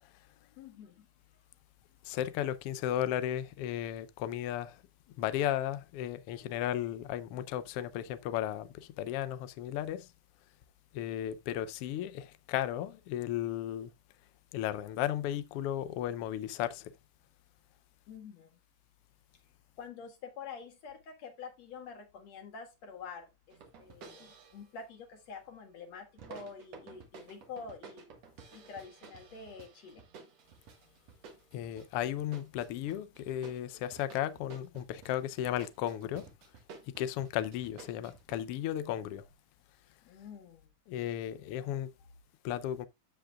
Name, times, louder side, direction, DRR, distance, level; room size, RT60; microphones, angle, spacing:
voice 1, 0.4-1.1 1.3-1.4 18.1-18.6 19.8-28.1 28.5-30.0 40.0-40.7, left 5 dB, 65° left, 2.8 m, -47 dB
voice 2, 2.0-4.8 5.2-10.1 10.9-13.9 14.5-16.9 31.5-36.3 37.0-39.2 40.9-41.9 42.4-42.9, left 11 dB, 90° left, 1.3 m, -35 dB
sound 1, 23.5-24.7 26.2-38.4, right 5 dB, 65° right, 2.7 m, -53 dB
14.5 x 5.1 x 2.3 m
omnidirectional pair, 3.4 m